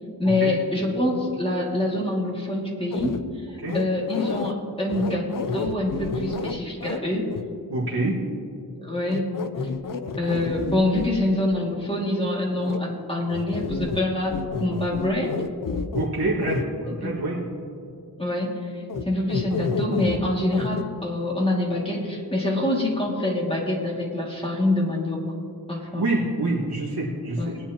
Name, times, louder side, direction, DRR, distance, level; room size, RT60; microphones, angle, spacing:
voice 1, 0.2-3.2 3.5-7.3 8.8-9.3 10.2-15.4 16.9-17.1 18.2-25.2 25.7-26.0 27.4-27.6, left 1 dB, 15° left, -2 dB, 2.2 m, -25 dB
sound 1, 2.9-3.2 3.7-4.5 4.9-7.0 7.3-7.4 9.1-11.1 12.6-12.8 13.3-14.0 14.3-16.1 16.4-16.6 18.9-19.0 19.3-20.2 20.5-20.8, left 4 dB, 55° left, 0.6 m, -29 dB
voice 2, 7.7-8.2 15.9-17.4 26.0-27.7, right 2 dB, 85° right, -7 dB, 1.9 m, -26 dB
20.0 x 9.7 x 2.9 m, 2.5 s
wide cardioid pair, 95°, 39 cm